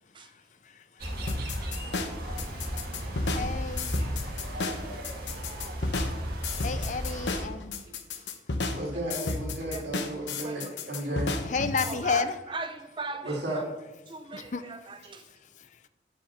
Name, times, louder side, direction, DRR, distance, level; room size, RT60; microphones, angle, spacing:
sound 1, 1.0-7.4, equal, 55° right, 1.9 m, -35 dB
sound 2, 1.3-11.9, left 3 dB, 90° left, 0.9 m, -33 dB
voice 1, 3.3-3.9 6.6-7.8 11.4-12.4 14.3-14.6, left 5 dB, 45° left, 12 dB, 0.5 m, -31 dB
voice 2, 6.5-6.9 7.3-7.4 8.9-9.1 9.7-9.8 10.4-10.7 11.1-11.4 11.8-13.6 14.1-15.3, right 3 dB, 30° right, 8 dB, 0.7 m, -40 dB
voice 3, 8.7-11.3 13.2-13.6, right 1 dB, 75° right, -2 dB, 2.7 m, -33 dB
9.7 x 5.0 x 6.7 m, 1.1 s
head